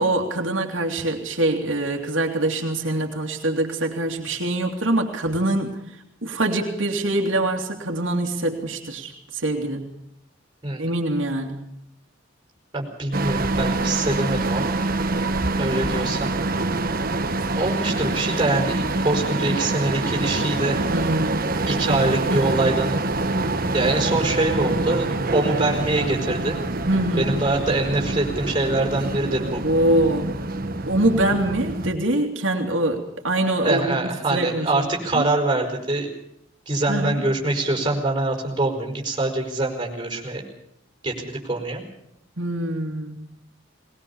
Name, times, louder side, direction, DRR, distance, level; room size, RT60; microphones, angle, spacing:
voice 1, 0.0-5.8 6.2-9.9 10.8-11.7 20.9-21.6 21.9-22.0 22.2-22.3 26.9-27.4 29.6-30.3 30.9-34.0 34.3-34.9 35.1-35.3 36.9-37.2 42.4-43.3, right 1 dB, 75° right, 1 dB, 2.7 m, -24 dB
voice 2, 12.7-14.8 15.6-16.3 17.5-20.8 21.7-23.0 23.7-26.6 27.2-29.6 33.6-36.1 36.7-40.4 41.0-41.8, right 2 dB, 25° right, 1 dB, 5.1 m, -24 dB
sound 1, 13.1-31.9, right 2 dB, 45° right, 1.4 m, -25 dB
20.5 x 19.5 x 7.1 m, 0.77 s
head